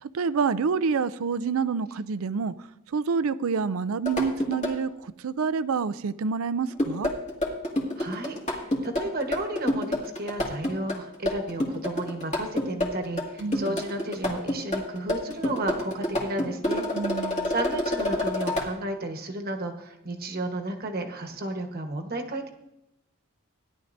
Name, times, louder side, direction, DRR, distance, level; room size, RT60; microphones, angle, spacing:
voice 1, 0.0-2.5 2.9-7.1 13.4-13.8 16.9-17.5, right 5 dB, 70° right, 16 dB, 0.4 m, -27 dB
sound 1, 4.1-4.7 6.7-18.7, left 1 dB, 35° left, 2.1 m, -28 dB
voice 2, 8.0-16.8 17.1-22.5, right 2 dB, 45° right, 4 dB, 1.2 m, -33 dB
16.5 x 10.5 x 2.6 m, 0.85 s
head